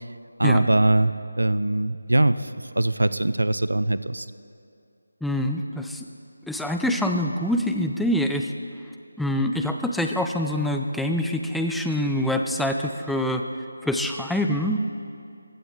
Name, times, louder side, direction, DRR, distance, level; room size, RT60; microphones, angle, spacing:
voice 1, 0.4-1.1 1.4-4.3, right 1 dB, 85° right, 14 dB, 0.4 m, -21 dB
voice 2, 5.2-6.1 6.5-8.5 9.2-13.4 13.8-14.8, left 1 dB, ahead, 4 dB, 0.3 m, -25 dB
15.0 x 8.0 x 3.9 m, 2.5 s
figure-of-eight pair, 165°, 0 cm